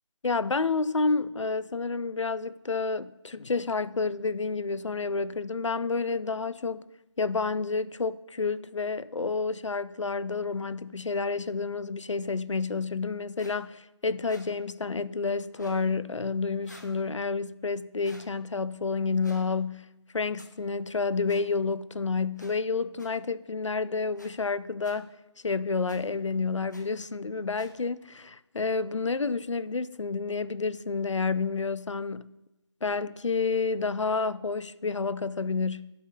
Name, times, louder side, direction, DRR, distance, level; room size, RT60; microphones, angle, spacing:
voice 1, 0.2-6.8 7.2-19.9 20.1-25.1 25.4-32.3 32.8-35.9, left 4 dB, 80° left, 0.4 m, -29 dB
sound 1, 13.4-13.5 14.2-14.5 15.5-15.8 16.6-16.9 18.0-18.3 19.2-19.4 20.4-20.5 21.3-21.4 22.4-22.5 23.0-23.1 24.1-24.3 24.8-24.9 25.9-26.0 26.7-26.8 27.5-27.7, left 1 dB, 40° left, 0.8 m, -50 dB
11.5 x 5.7 x 2.2 m
figure-of-eight pair, 180°, 15 cm